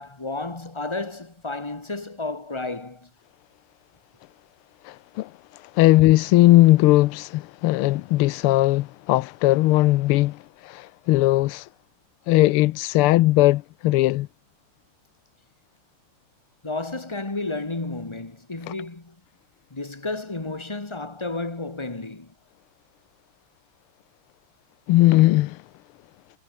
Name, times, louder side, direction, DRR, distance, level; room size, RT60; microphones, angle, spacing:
voice 1, 0.0-3.1 16.6-19.2 19.7-22.3, left 2 dB, 15° left, 1.6 m, -32 dB
voice 2, 4.8-11.7 12.3-14.3 18.7-18.8 24.9-25.6, left 17 dB, 85° left, 1.5 m, -19 dB
omnidirectional pair, 2.4 m